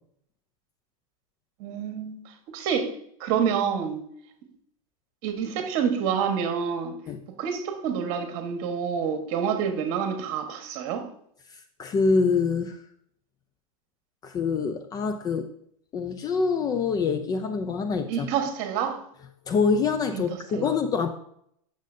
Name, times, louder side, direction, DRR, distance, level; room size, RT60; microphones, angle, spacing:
voice 1, 1.6-2.2 2.5-2.9 3.2-4.0 5.2-7.0 7.4-11.0 18.1-19.0 20.1-20.2 20.5-20.7, right 7 dB, 50° right, 6 dB, 1.3 m, -27 dB
voice 2, 11.8-12.8 14.2-15.5 15.9-18.5 19.5-21.1, left 5 dB, 20° left, 8 dB, 0.4 m, -25 dB
8.1 x 6.3 x 2.7 m, 0.70 s
supercardioid pair, 135°, 18 cm